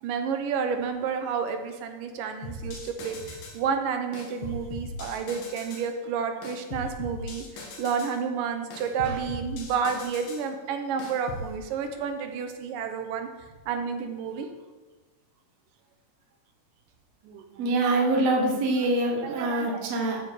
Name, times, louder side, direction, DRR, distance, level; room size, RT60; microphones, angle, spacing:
voice 1, 0.0-7.4 7.8-13.3 13.7-14.5 17.3-17.4 18.1-18.2 19.2-19.8, right 6 dB, 80° right, 6 dB, 2.4 m, -30 dB
sound 1, 2.4-3.6 4.1-5.9 6.4-8.2 8.7-10.5 11.0-11.5, left 2 dB, 80° left, 3.0 m, -39 dB
voice 2, 17.6-20.2, right 2 dB, 55° right, 0 dB, 2.2 m, -24 dB
13.5 x 4.7 x 4.8 m, 1.3 s
omnidirectional pair, 3.9 m